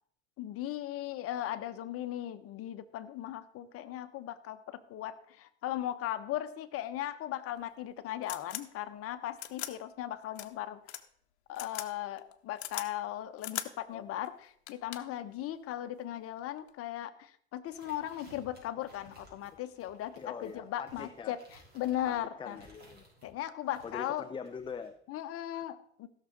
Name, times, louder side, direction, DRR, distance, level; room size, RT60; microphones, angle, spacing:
voice 1, 0.4-10.8 11.5-21.4 21.7-22.6 23.2-24.2 25.1-26.1, left 12 dB, 40° left, 11 dB, 1.1 m, -38 dB
sound 1, 7.6-7.7 8.2-8.6 9.4-9.7 10.4-10.5 10.9-11.0 11.6-11.9 12.2-12.9 13.4-13.7 14.2-14.3 14.7-15.2 16.4-16.7, left 13 dB, 70° left, 0.9 m, -39 dB
sound 2, 17.7-23.3 23.7-24.9, right 1 dB, 30° right, 5.0 m, -58 dB
voice 2, 20.2-21.4 22.1-23.0 23.8-24.9, left 6 dB, 15° left, 9 dB, 0.5 m, -43 dB
16.0 x 6.4 x 4.0 m, 0.62 s
hypercardioid pair, 85°, 34 cm